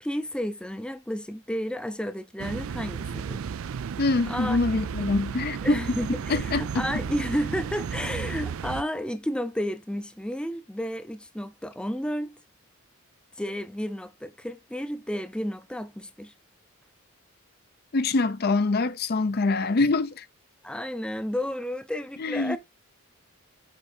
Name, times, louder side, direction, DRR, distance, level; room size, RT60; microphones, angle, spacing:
voice 1, 0.0-3.4 4.3-4.6 5.0-5.1 5.6-12.4 13.4-16.3 20.6-22.6, equal, 5° left, 0.6 m, -32 dB
sound 1, 2.4-8.8, right 6 dB, 75° right, 0.4 m, -33 dB
voice 2, 4.0-5.8 6.3-6.9 17.9-20.3 22.2-22.6, left 3 dB, 45° left, 0.6 m, -25 dB
8.3 x 4.4 x 4.4 m
head